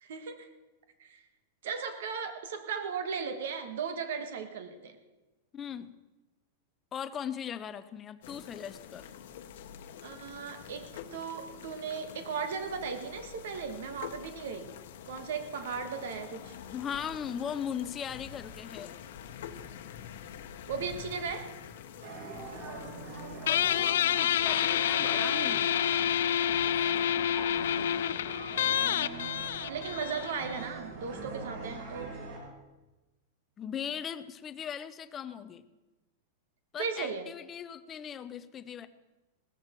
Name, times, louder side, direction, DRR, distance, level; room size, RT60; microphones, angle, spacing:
voice 1, 0.0-0.5 1.0-1.2 1.6-5.0 10.0-14.7 15.1-16.6 20.7-21.5 28.8-32.2 36.8-37.3, right 6 dB, 70° right, 8 dB, 1.6 m, -37 dB
voice 2, 5.5-5.9 6.9-9.1 16.7-18.9 23.5-25.8 33.6-35.6 36.7-38.9, left 8 dB, 15° left, 13 dB, 0.6 m, -39 dB
sound 1, 8.2-23.9, left 8 dB, 60° left, 1.1 m, -46 dB
sound 2, 22.0-32.4, right 3 dB, 55° right, 7.0 m, -42 dB
Guitar, 23.5-30.6, left 10 dB, 80° left, 0.4 m, -28 dB
18.0 x 13.5 x 4.5 m, 1.1 s
supercardioid pair, 170°, 0 cm